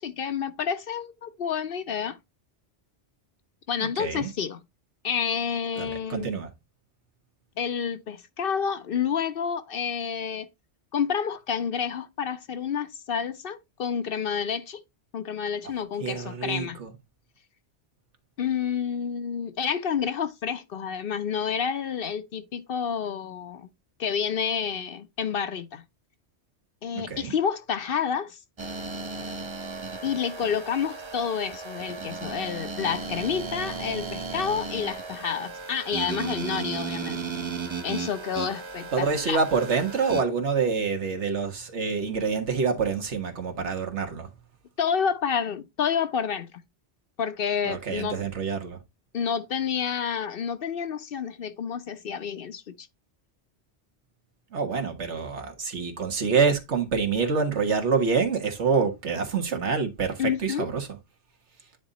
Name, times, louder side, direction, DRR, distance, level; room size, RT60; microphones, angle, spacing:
voice 1, 0.0-2.2 3.7-4.6 5.0-6.3 7.6-10.5 10.9-14.8 15.1-16.8 18.4-23.7 24.0-25.8 26.8-28.4 30.0-37.2 37.8-39.4 44.8-46.5 47.2-48.2 49.1-52.9 60.2-60.7, left 7 dB, 60° left, 0.8 m, -29 dB
voice 2, 4.0-4.3 5.8-6.5 16.0-16.9 27.0-27.3 38.9-44.3 47.6-48.8 54.5-61.0, right 5 dB, 80° right, 1.7 m, -26 dB
sound 1, 28.6-40.2, right 4 dB, 30° right, 0.7 m, -35 dB
9.7 x 3.9 x 4.0 m
omnidirectional pair, 1.2 m